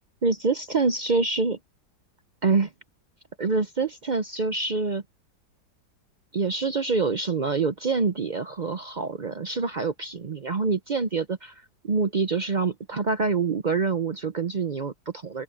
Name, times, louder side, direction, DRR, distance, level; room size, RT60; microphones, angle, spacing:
voice 1, 0.2-1.6 2.4-2.7 3.4-5.0 6.3-15.4, right 4 dB, 65° right, 0.4 m, -26 dB
open air
omnidirectional pair, 1.9 m